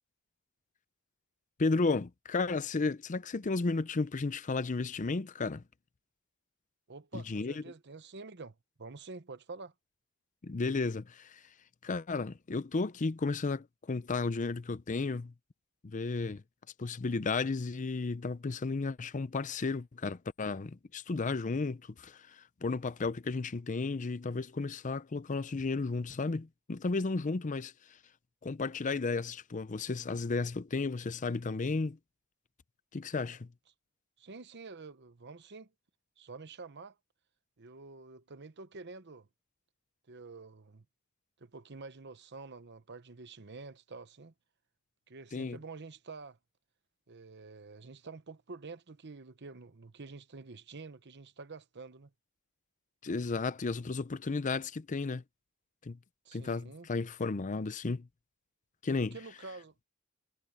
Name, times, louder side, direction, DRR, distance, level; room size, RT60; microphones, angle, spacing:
voice 1, 1.6-5.6 7.1-7.6 10.4-11.4 11.8-15.3 15.8-16.4 16.8-27.7 28.4-32.0 32.9-33.5 45.3-45.6 53.0-55.2 55.8-56.0 56.3-58.1 58.8-59.1, left 3 dB, 35° left, 0.5 m, -33 dB
voice 2, 6.9-9.7 34.2-35.7 36.2-37.0 37.6-39.3 40.1-40.8 41.4-44.3 45.1-46.4 47.1-52.1 56.2-56.9 59.1-59.7, right 3 dB, 55° right, 1.0 m, -48 dB
head